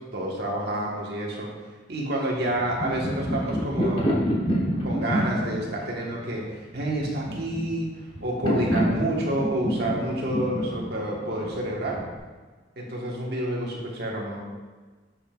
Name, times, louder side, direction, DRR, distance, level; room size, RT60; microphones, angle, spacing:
voice 1, 0.1-1.5 1.9-4.2 4.8-6.4 6.7-7.9 8.2-12.0 12.8-14.4, right 1 dB, 60° right, -3 dB, 1.5 m, -29 dB
sound 1, 2.5-12.2, equal, 30° left, 1.1 m, -28 dB
8.7 x 6.9 x 2.5 m, 1.4 s
head